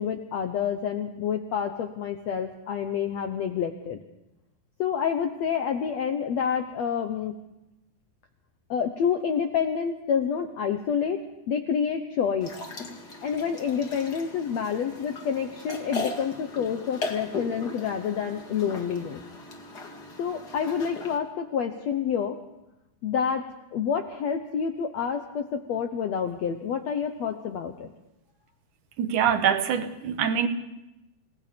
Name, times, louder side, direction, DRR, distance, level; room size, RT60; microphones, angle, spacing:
voice 1, 0.0-4.0 4.8-7.3 8.7-12.5 13.2-19.2 20.2-22.4 23.0-23.4 23.7-27.9, left 7 dB, 75° left, 1.6 m, -28 dB
sound 1, 12.4-21.2, left 3 dB, 35° left, 1.9 m, -38 dB
voice 2, 29.0-30.5, right 8 dB, 65° right, 2.3 m, -24 dB
28.5 x 18.0 x 5.2 m
omnidirectional pair, 4.4 m